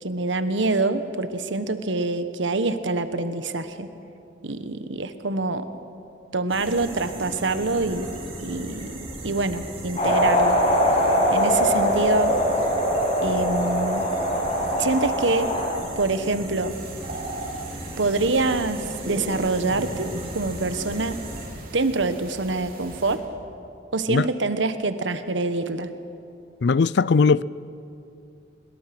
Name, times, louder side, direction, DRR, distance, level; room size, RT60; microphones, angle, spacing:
voice 1, 0.0-3.9 4.4-5.7 6.3-8.1 8.4-10.6 11.3-12.3 13.2-14.1 14.8-15.5 16.0-16.8 18.0-21.2 21.7-23.2 23.9-25.9, right 3 dB, 90° right, 1.3 m, -25 dB
sound 1, 6.5-21.5, right 1 dB, 35° right, 6.7 m, -37 dB
sound 2, 10.0-15.7, equal, 35° left, 6.0 m, -22 dB
sound 3, 16.7-23.2, right 1 dB, 50° right, 3.2 m, -38 dB
voice 2, 26.6-27.4, left 4 dB, 65° left, 0.4 m, -19 dB
26.0 x 21.5 x 6.1 m
head